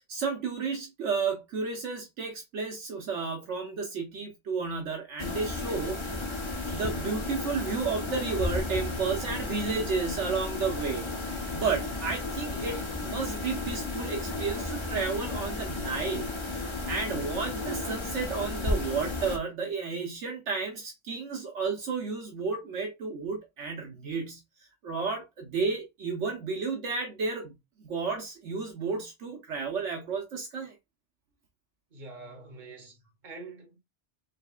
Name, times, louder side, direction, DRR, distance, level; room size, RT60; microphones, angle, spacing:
voice 1, 0.1-6.4 6.7-11.1 11.5-24.4 24.8-27.5 27.8-30.7, right 4 dB, 70° right, 1.2 m, -32 dB
sound 1, 5.2-19.4, left 2 dB, 25° left, 0.9 m, -33 dB
voice 2, 31.9-33.8, right 3 dB, 40° right, 1.4 m, -45 dB
5.1 x 3.4 x 2.3 m
omnidirectional pair, 1.3 m